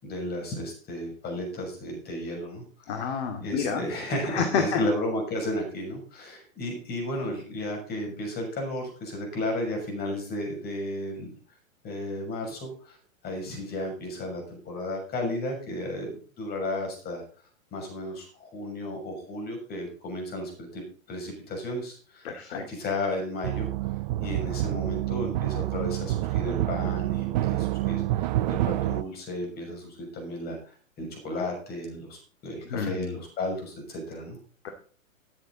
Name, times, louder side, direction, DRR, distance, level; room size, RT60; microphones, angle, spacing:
voice 1, 0.0-2.6 3.4-11.3 11.8-13.0 13.2-17.2 17.7-20.8 21.1-23.7 24.2-34.4, left 1 dB, 25° left, 2 dB, 6.4 m, -33 dB
voice 2, 2.9-3.8 4.3-4.8 22.2-22.6 32.7-33.2 34.6-34.7, left 6 dB, 50° left, 5 dB, 2.4 m, -29 dB
sound 1, 23.4-29.0, right 16 dB, 35° right, 0.5 m, -28 dB
14.0 x 10.0 x 4.0 m, 0.41 s
hypercardioid pair, 120°, 41 cm